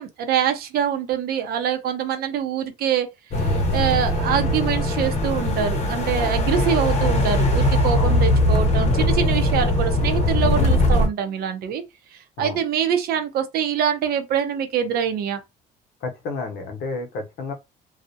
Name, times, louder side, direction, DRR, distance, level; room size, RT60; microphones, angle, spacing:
voice 1, 0.0-3.1 3.4-11.8 12.4-15.4, right 8 dB, 65° right, 0.6 m, -24 dB
sound 1, 3.3-11.1, left 1 dB, 40° left, 0.8 m, -20 dB
voice 2, 16.0-17.5, left 3 dB, 75° left, 0.8 m, -31 dB
2.4 x 2.0 x 2.7 m
cardioid pair, 110°, 17 cm